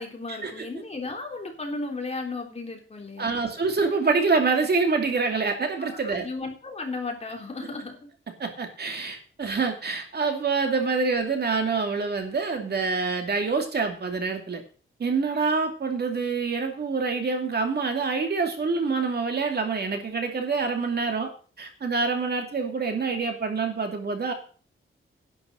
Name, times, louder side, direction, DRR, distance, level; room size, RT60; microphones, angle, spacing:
voice 1, 0.0-3.4 5.8-8.1, left 3 dB, 30° left, 1 dB, 3.5 m, -35 dB
voice 2, 3.2-6.3 8.4-14.6 15.0-21.3 21.6-24.3, right 4 dB, 50° right, 4 dB, 2.5 m, -26 dB
11.0 x 9.3 x 6.2 m, 0.40 s
wide cardioid pair, 135°, 21 cm